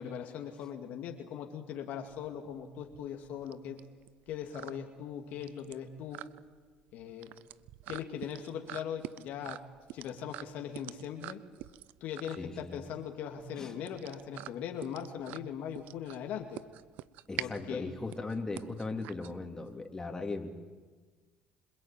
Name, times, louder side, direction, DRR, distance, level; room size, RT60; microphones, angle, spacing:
voice 1, 0.0-3.8 4.3-6.3 6.9-7.4 7.9-9.6 9.9-11.4 12.0-16.6 17.4-17.9, left 8 dB, 70° left, 3 dB, 2.4 m, -40 dB
sound 1, 2.1-19.8, right 15 dB, 70° right, 0.7 m, -46 dB
voice 2, 12.4-12.8 13.6-13.7 17.3-20.5, left 3 dB, 20° left, 3 dB, 3.4 m, -38 dB
26.5 x 21.5 x 9.1 m, 1.4 s
supercardioid pair, 70°, 3 cm